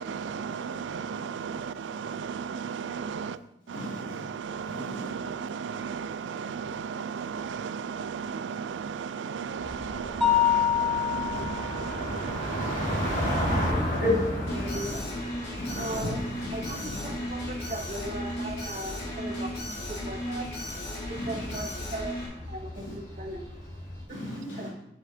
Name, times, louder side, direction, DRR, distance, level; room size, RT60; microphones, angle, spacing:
voice 1, 0.0-3.4 3.7-14.0 15.8-16.0, right 6 dB, 80° right, 15 dB, 0.4 m, -35 dB
voice 2, 3.7-4.2 4.6-5.1 11.3-11.4 13.6-13.7 14.0-15.1 15.6-17.2 21.1-21.6 22.7-23.0 24.1-24.7, left 2 dB, 85° left, -7 dB, 2.7 m, -34 dB
sound 1, 9.6-24.0, left 1 dB, 45° left, 1.8 m, -35 dB
Mallet percussion, 10.2-12.0, left 10 dB, ahead, 0.6 m, -25 dB
Alarm, 14.5-22.3, left 1 dB, 60° left, 2.8 m, -36 dB
voice 3, 14.6-14.9 15.8-16.2 16.5-17.4 17.7-19.5 19.9-20.5 21.3-22.1 22.5-22.7 23.2-23.4 24.6-24.7, right 2 dB, 40° right, 3 dB, 0.8 m, -37 dB
8.9 x 7.2 x 2.7 m, 0.85 s
head